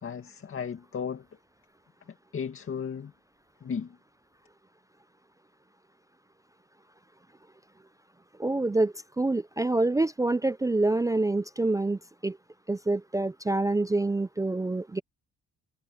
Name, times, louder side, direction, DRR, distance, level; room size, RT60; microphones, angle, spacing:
voice 1, 0.0-1.2 2.3-3.1 3.6-4.0, left 6 dB, 45° left, 2.2 m, -35 dB
voice 2, 8.4-12.4 12.7-15.0, right 2 dB, 10° right, 0.4 m, -26 dB
cardioid pair, 90°, 30 cm